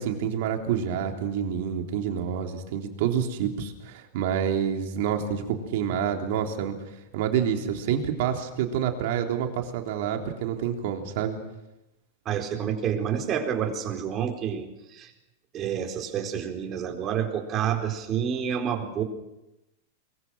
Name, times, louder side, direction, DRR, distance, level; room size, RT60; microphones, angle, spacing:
voice 1, 0.0-6.8 7.1-11.4, right 8 dB, 60° right, 3 dB, 3.6 m, -28 dB
voice 2, 12.3-15.1 15.5-19.0, right 8 dB, 35° right, 4 dB, 4.2 m, -29 dB
23.5 x 23.0 x 6.3 m, 0.92 s
hypercardioid pair, 100°, 0 cm